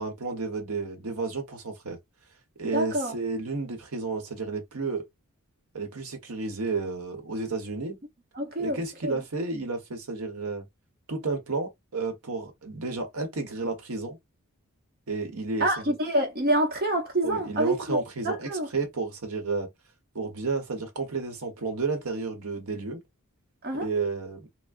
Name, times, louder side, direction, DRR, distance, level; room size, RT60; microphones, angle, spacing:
voice 1, 0.0-2.0 2.6-5.0 5.7-8.0 8.6-10.6 11.1-14.2 15.1-15.8 17.2-19.7 20.1-23.0 23.7-24.5, right 3 dB, 75° right, 1.0 m, -32 dB
voice 2, 2.7-3.2 8.3-9.2 15.6-18.7 23.6-23.9, right 1 dB, 45° right, 0.8 m, -27 dB
3.4 x 2.1 x 2.5 m
head